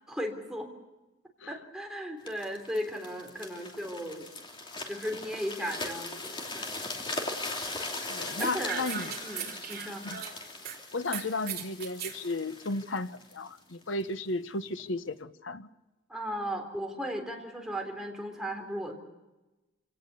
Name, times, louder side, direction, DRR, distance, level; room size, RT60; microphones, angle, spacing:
voice 1, 0.1-0.7 1.5-4.3 4.9-6.7 8.0-8.9 9.2-10.0 16.1-19.0, equal, 5° right, 1 dB, 3.6 m, -36 dB
sound 1, 2.3-14.1 14.7-14.9, left 2 dB, 25° left, 3.2 m, -40 dB
voice 2, 8.1-9.1 10.0-10.2 10.9-15.7, left 2 dB, 85° left, 12 dB, 1.0 m, -34 dB
sound 2, 8.4-10.8 11.1-12.2, right 8 dB, 55° right, 3.5 m, -38 dB
27.5 x 18.0 x 6.9 m, 1.1 s
head